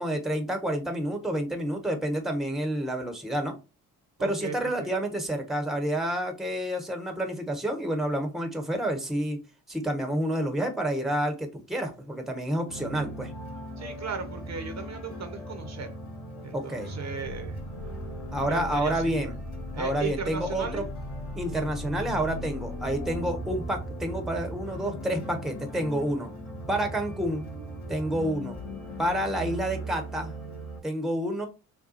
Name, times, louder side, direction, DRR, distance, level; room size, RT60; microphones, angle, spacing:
voice 1, 0.0-3.6 4.2-9.4 9.7-13.3 16.5-16.9 18.3-19.3 19.8-20.8 21.3-26.3 26.7-27.4 27.9-28.6 29.0-30.3 30.8-31.5, right 1 dB, ahead, 5 dB, 1.0 m, -29 dB
voice 2, 4.2-4.9 13.8-15.9 16.4-17.6 18.4-19.3 19.7-20.8, right 5 dB, 40° right, 6 dB, 0.9 m, -36 dB
sound 1, 12.7-30.8, equal, 80° left, 2.0 m, -38 dB
6.7 x 2.2 x 2.8 m, 0.30 s
hypercardioid pair, 45°, 43 cm